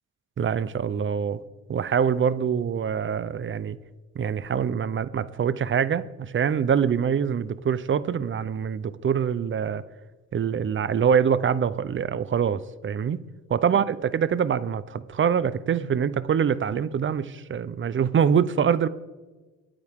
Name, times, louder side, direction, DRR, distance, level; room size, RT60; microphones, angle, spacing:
voice 1, 0.4-1.4 1.7-3.8 4.2-9.8 10.3-13.2 13.5-18.9, right 7 dB, 40° right, 16 dB, 0.7 m, -24 dB
23.0 x 9.0 x 3.7 m, 1.2 s
cardioid pair, 90°, 30 cm